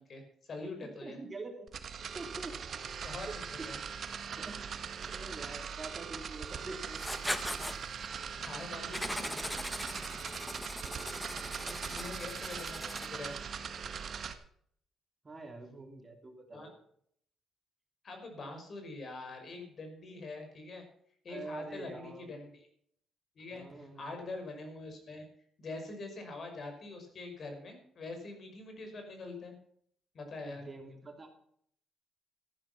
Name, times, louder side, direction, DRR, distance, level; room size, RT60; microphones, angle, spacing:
voice 1, 0.0-1.2 3.0-3.8 8.4-9.4 11.5-13.4 16.5-16.7 18.0-20.8 21.2-22.7 23.4-25.2 25.6-29.6 30.1-30.7, left 3 dB, 50° left, 5 dB, 5.5 m, -44 dB
voice 2, 0.8-1.7 2.1-2.5 3.3-3.7 4.4-4.6 5.0-7.0 11.5-12.0 15.2-16.8 21.3-22.3 23.5-24.2 30.4-31.3, right 3 dB, 30° right, 3 dB, 3.2 m, -46 dB
sound 1, 1.7-14.3, right 6 dB, 55° right, 1.6 m, -41 dB
Writing, 7.0-7.8 8.9-13.3, left 1 dB, 5° left, 1.5 m, -39 dB
14.5 x 10.5 x 5.9 m, 0.64 s
cardioid pair, 90°, 0 cm